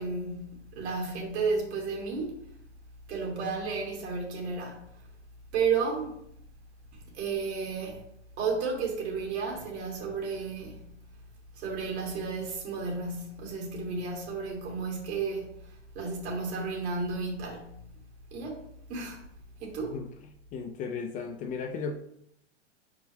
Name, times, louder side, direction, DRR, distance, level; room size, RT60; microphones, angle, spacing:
voice 1, 0.0-2.4 3.1-5.0 5.5-6.2 6.9-8.0 8.4-10.9 11.5-17.8 18.3-18.6 18.9-19.2 19.6-20.0, right 4 dB, 65° right, 2.6 m, -33 dB
voice 2, 20.5-22.0, left 5 dB, 25° left, 0.4 m, -35 dB
5.8 x 4.7 x 3.5 m
hypercardioid pair, 115°, 36 cm